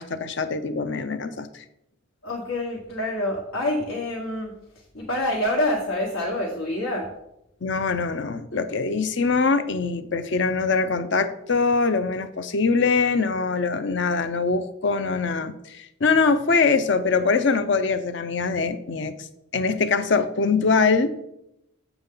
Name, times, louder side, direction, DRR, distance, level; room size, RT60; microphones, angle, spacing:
voice 1, 0.0-1.5 7.6-19.3 19.5-21.1, left 4 dB, 55° left, 11 dB, 0.6 m, -23 dB
voice 2, 2.2-4.5 4.9-7.1, left 1 dB, 85° left, -3 dB, 1.5 m, -26 dB
8.0 x 7.1 x 3.8 m, 0.83 s
head